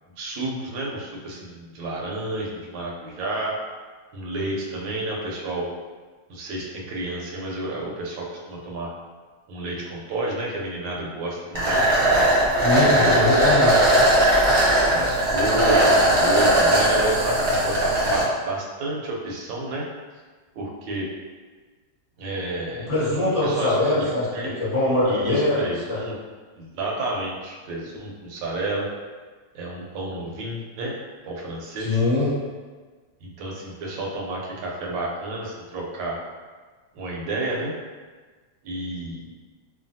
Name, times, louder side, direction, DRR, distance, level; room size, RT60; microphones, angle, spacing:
voice 1, 0.2-3.6 4.1-5.7 6.3-8.9 9.5-11.9 12.8-13.4 14.8-19.9 20.6-21.1 22.2-22.9 23.4-24.5 25.0-26.2 26.6-28.9 29.5-31.0 31.2-32.0 33.2-36.2 36.9-37.7 38.6-39.2, right 2 dB, 85° right, -2 dB, 1.3 m, -30 dB
sound 1, 11.5-18.2, right 1 dB, 50° right, 0.7 m, -19 dB
voice 2, 12.6-13.8 22.9-26.0 31.8-32.3, left 2 dB, 35° left, -11 dB, 0.5 m, -22 dB
3.1 x 2.2 x 2.6 m, 1.4 s
omnidirectional pair, 2.1 m